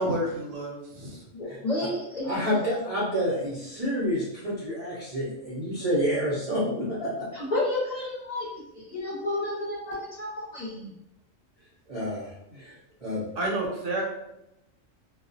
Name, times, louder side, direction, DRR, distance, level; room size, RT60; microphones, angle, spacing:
voice 1, 0.0-1.2 12.5-12.6 13.4-14.0, right 1 dB, 70° right, -2 dB, 0.9 m, -30 dB
voice 2, 1.3-2.6 7.3-8.5 8.8-10.9, left 2 dB, 40° left, -8 dB, 0.7 m, -31 dB
voice 3, 2.3-7.3 11.9-12.3 12.6-12.7 13.0-13.2, equal, 40° right, -9 dB, 0.5 m, -28 dB
2.4 x 2.0 x 2.5 m, 0.86 s
omnidirectional pair, 1.4 m